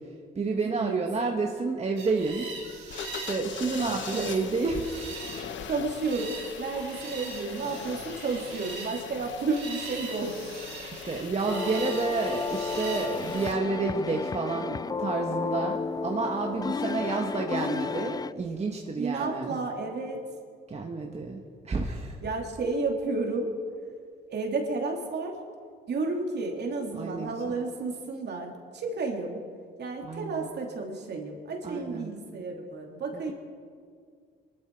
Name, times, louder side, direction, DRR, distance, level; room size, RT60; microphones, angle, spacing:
voice 1, 0.0-2.5 3.1-4.9 6.8-6.9 10.9-19.6 20.7-22.2 26.9-27.6 30.0-30.5 31.6-32.1 33.1-33.3, right 3 dB, 35° right, 1 dB, 1.4 m, -30 dB
voice 2, 0.5-1.0 3.7-4.6 5.6-10.4 19.0-20.2 22.2-23.5 24.3-25.4 25.9-29.4 29.8-33.3, right 3 dB, 60° right, 1 dB, 2.9 m, -32 dB
sound 1, 2.0-13.6, right 4 dB, 85° right, 4.6 m, -42 dB
sound 2, 2.9-13.5, left 8 dB, 70° left, 1.1 m, -41 dB
sound 3, 11.5-18.3, left 5 dB, 20° left, 0.3 m, -32 dB
23.0 x 12.5 x 4.7 m, 2.1 s
cardioid pair, 90°, 20 cm